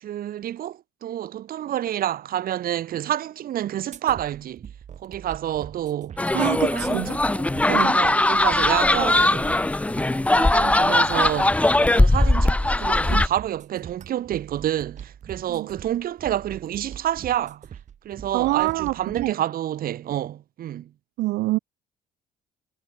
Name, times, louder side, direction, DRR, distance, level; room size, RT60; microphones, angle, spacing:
voice 1, 0.0-4.6 5.0-6.2 6.7-7.4 7.9-9.5 10.3-17.7 18.0-20.9, right 11 dB, 60° right, 2.3 m, -28 dB
sound 1, 3.9-19.3, right 8 dB, 45° right, 1.7 m, -42 dB
sound 2, 6.2-13.3, left 2 dB, 10° left, 0.8 m, -20 dB
voice 2, 6.3-7.1 7.7-8.0 13.1-13.3 15.5-15.7 18.3-19.4 21.2-21.6, right 19 dB, 85° right, 1.0 m, -25 dB
cardioid pair, 110°, 17 cm